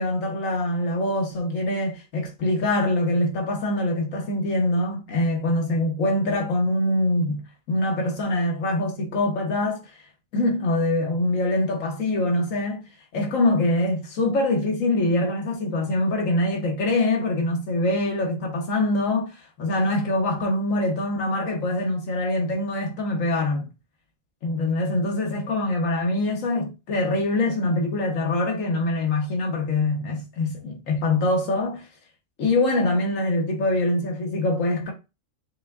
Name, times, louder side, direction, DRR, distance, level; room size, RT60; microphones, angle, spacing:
voice 1, 0.0-7.4 7.7-10.0 10.3-23.7 24.4-31.9 32.4-34.9, left 2 dB, 75° left, 1.6 m, -24 dB
5.6 x 2.3 x 3.6 m
omnidirectional pair, 1.4 m